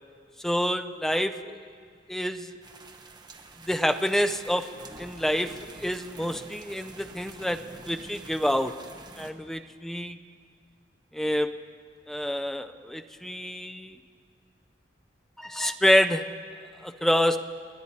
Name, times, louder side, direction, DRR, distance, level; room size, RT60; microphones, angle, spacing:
voice 1, 0.4-1.6 2.1-2.6 3.7-4.7 5.0-8.7 9.2-10.2 11.1-11.5 12.1-14.0 15.4-16.3 16.8-17.4, equal, ahead, 8 dB, 0.4 m, -27 dB
sound 1, 2.6-9.3, right 3 dB, 25° right, 0.9 m, -47 dB
29.5 x 9.9 x 4.2 m, 2.2 s
head